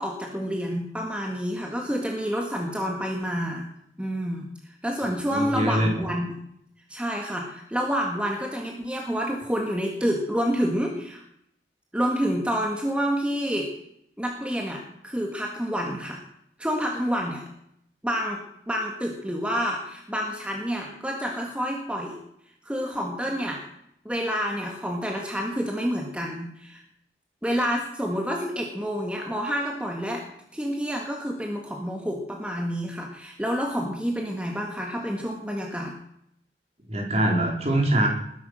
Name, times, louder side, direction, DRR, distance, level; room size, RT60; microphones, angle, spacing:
voice 1, 0.0-3.7 4.0-6.4 6.9-11.2 11.9-13.7 14.2-16.2 16.6-17.4 18.0-22.2 22.6-23.6 24.1-26.8 27.4-30.3 30.5-36.0, equal, 5° right, 1 dB, 1.8 m, -28 dB
voice 2, 5.3-6.1 36.9-38.1, right 1 dB, 35° right, 1 dB, 4.0 m, -23 dB
20.0 x 11.0 x 6.4 m, 0.75 s
head